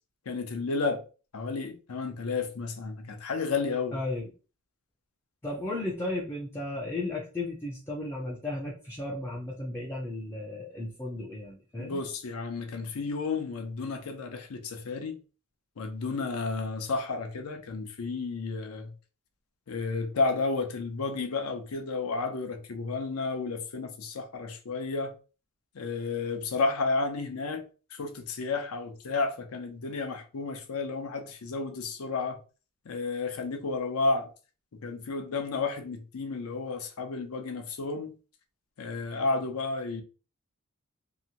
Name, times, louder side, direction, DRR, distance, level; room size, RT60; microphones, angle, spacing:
voice 1, 0.3-1.0 1.3-4.0 11.8-15.2 15.8-18.9 19.7-25.1 25.7-27.6 27.9-32.4 32.9-34.3 34.8-38.1 38.8-40.0, left 3 dB, 80° left, 0.6 m, -32 dB
voice 2, 3.9-4.3 5.4-12.0, left 2 dB, 10° left, 0.4 m, -34 dB
2.8 x 2.1 x 2.7 m
head